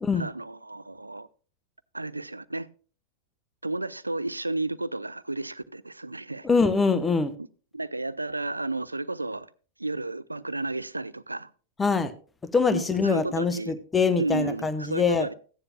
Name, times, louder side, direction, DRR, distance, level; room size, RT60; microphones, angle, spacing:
voice 1, 0.1-1.3 1.9-2.7 3.6-6.5 7.4-7.5 7.7-9.5 9.8-11.5 12.7-13.8 14.2-15.3, right 2 dB, 85° right, 0.4 m, -32 dB
voice 2, 6.4-7.3 11.8-12.1 12.5-15.3, left 4 dB, 15° left, 0.9 m, -24 dB
15.0 x 9.9 x 2.3 m
figure-of-eight pair, 90°, 0 cm